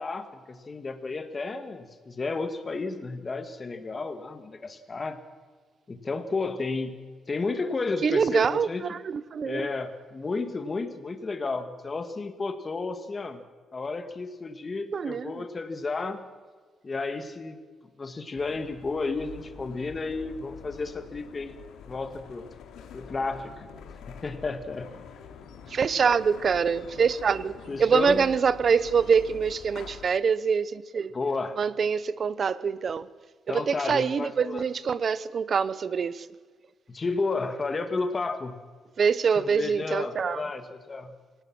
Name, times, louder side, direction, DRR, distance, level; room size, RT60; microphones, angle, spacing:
voice 1, 0.0-5.2 5.9-7.0 7.3-8.8 9.4-13.4 13.7-16.2 16.8-17.6 18.0-21.5 21.9-22.5 22.9-23.7 24.1-24.9 27.7-28.2 31.1-31.6 33.5-34.6 36.9-38.6 39.4-41.1, left 3 dB, 25° left, 1.9 m, -32 dB
voice 2, 8.0-9.7 14.9-15.4 25.7-27.5 27.8-31.1 31.6-33.1 33.5-36.3 39.0-40.4, right 6 dB, 35° right, 0.8 m, -25 dB
sound 1, 18.3-30.1, left 7 dB, 85° left, 2.7 m, -46 dB
26.5 x 18.0 x 6.1 m
cardioid pair, 165°, 0 cm